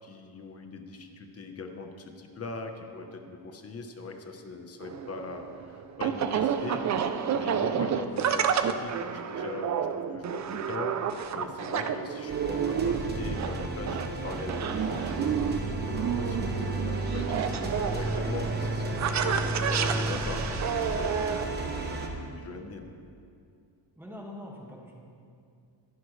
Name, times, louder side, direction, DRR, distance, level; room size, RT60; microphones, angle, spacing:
voice 1, 0.0-6.8 7.3-11.0 11.3-23.0, left 3 dB, 35° left, 4 dB, 1.0 m, -41 dB
sound 1, 4.8-21.4, right 7 dB, 40° right, 0.5 m, -30 dB
sound 2, 12.3-22.1, right 2 dB, 20° right, 1.1 m, -33 dB
voice 2, 24.0-25.0, left 1 dB, 5° right, -2 dB, 1.8 m, -44 dB
24.0 x 11.0 x 3.3 m, 2.4 s
cardioid pair, 180°, 44 cm